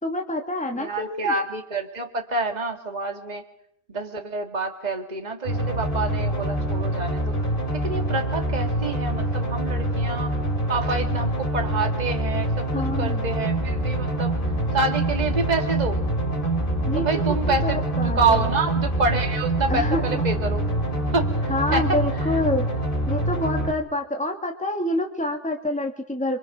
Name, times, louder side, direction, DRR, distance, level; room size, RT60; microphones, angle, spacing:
voice 1, 0.0-1.3 12.7-13.3 16.9-17.1 17.5-18.5 19.7-20.3 21.5-22.7 23.1-26.4, left 1 dB, 5° left, 3 dB, 2.3 m, -27 dB
voice 2, 0.8-3.4 3.9-7.3 7.7-10.3 10.7-14.3 14.7-16.0 17.0-17.8 18.2-20.6 21.1-21.8, right 3 dB, 35° right, 4 dB, 2.2 m, -27 dB
sound 1, 5.5-23.7, right 1 dB, 40° left, 4.2 m, -25 dB
29.5 x 24.5 x 6.2 m, 0.68 s
omnidirectional pair, 1.3 m